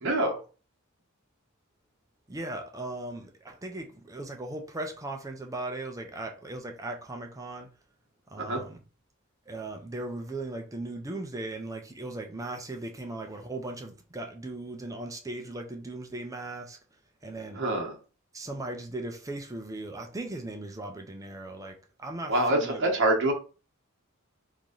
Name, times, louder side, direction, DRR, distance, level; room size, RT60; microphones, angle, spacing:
voice 1, 0.0-0.4 8.4-8.6 17.5-17.9 22.3-23.3, right 1 dB, 60° right, 1.0 m, -25 dB
voice 2, 2.3-7.7 8.3-8.8 9.5-16.8 17.2-17.6 18.3-22.8, right 2 dB, 15° right, 0.5 m, -38 dB
3.0 x 2.6 x 3.8 m
head